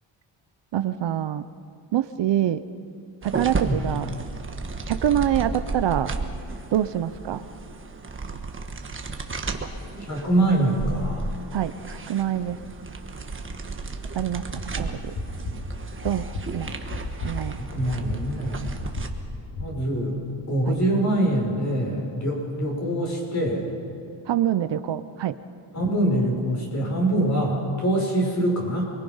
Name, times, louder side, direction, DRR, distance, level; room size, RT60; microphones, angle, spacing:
voice 1, 0.7-1.4 1.9-2.6 3.2-4.1 4.9-6.1 6.7-7.4 11.5-11.7 12.1-12.6 14.1-14.4 14.8-15.1 16.0-16.2 16.5-16.7 17.2-17.6 20.7-20.8 24.3-25.4, right 11 dB, 65° right, 12 dB, 0.8 m, -25 dB
sound 1, 3.2-19.1, right 3 dB, 25° right, 1.4 m, -34 dB
voice 2, 10.0-11.3 17.6-18.7 19.6-23.7 25.7-28.8, right 1 dB, 35° left, -1 dB, 6.3 m, -24 dB
sound 2, 11.4-19.7, left 1 dB, 75° left, 3.9 m, -36 dB
28.5 x 22.5 x 5.6 m, 2.4 s
wide cardioid pair, 150°, 46 cm